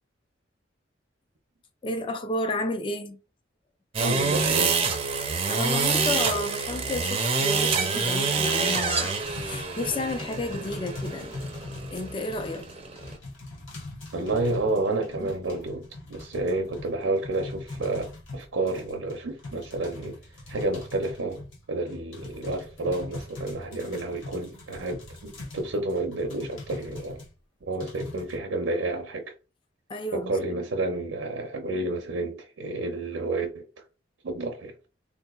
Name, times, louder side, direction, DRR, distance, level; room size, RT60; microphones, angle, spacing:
voice 1, 1.8-3.2 5.5-11.4 11.9-12.7 29.9-30.3, left 2 dB, 25° left, 0.4 m, -31 dB
sound 1, 3.9-13.2, right 4 dB, 30° right, 0.5 m, -27 dB
voice 2, 4.0-4.8 14.1-20.2 20.5-21.4 21.7-27.2 27.7-29.3 30.1-33.6 34.2-34.7, right 2 dB, 85° right, 0.6 m, -30 dB
sound 2, 9.2-27.3 27.8-28.4, left 2 dB, 85° left, 1.1 m, -41 dB
3.6 x 2.7 x 2.3 m
head